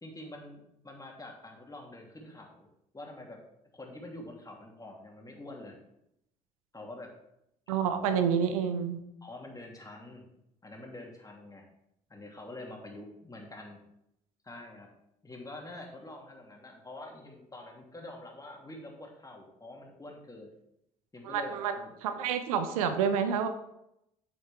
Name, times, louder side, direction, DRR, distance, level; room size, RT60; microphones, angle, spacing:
voice 1, 0.0-2.7 2.9-3.4 3.7-5.8 6.7-7.1 7.8-8.3 9.2-10.3 10.6-11.6 12.1-13.8 14.4-14.9 15.2-20.5 21.1-21.9, left 2 dB, 20° left, 0 dB, 2.7 m, -46 dB
voice 2, 7.7-9.0 21.2-21.7 22.0-23.5, right 7 dB, 80° right, 8 dB, 0.8 m, -28 dB
8.4 x 7.0 x 3.5 m, 0.80 s
hypercardioid pair, 55°, 18 cm